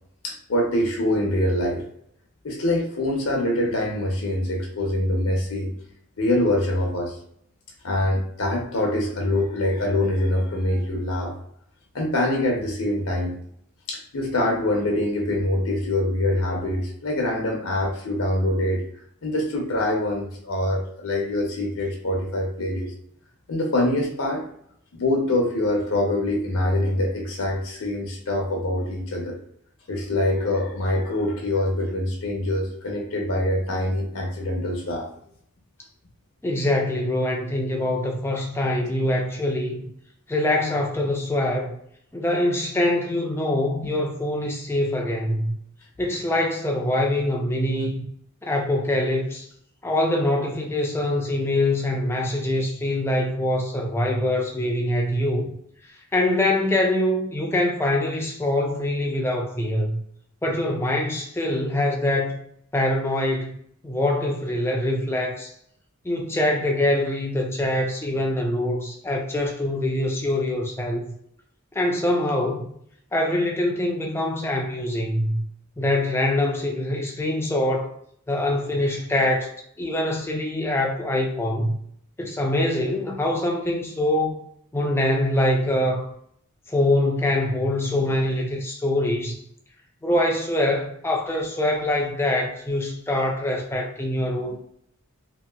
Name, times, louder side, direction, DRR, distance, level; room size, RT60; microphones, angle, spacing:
voice 1, 0.2-1.8 2.4-5.7 6.2-7.2 7.8-11.3 11.9-13.4 13.9-18.8 19.2-22.9 23.5-24.4 24.9-29.4 29.9-35.1, left 1 dB, 75° left, 0.7 m, -24 dB
voice 2, 36.4-39.9 40.3-41.8 42.1-45.5 46.0-48.0 48.4-49.5 49.8-55.5 56.1-60.0 60.4-62.4 62.7-63.5 63.8-65.5 66.0-71.0 71.7-72.7 73.1-75.4 75.8-77.9 78.3-79.5 79.8-81.8 82.2-84.4 84.7-86.1 86.7-89.4 90.0-94.6, left 1 dB, 10° left, 0.4 m, -24 dB
3.0 x 2.8 x 2.2 m
head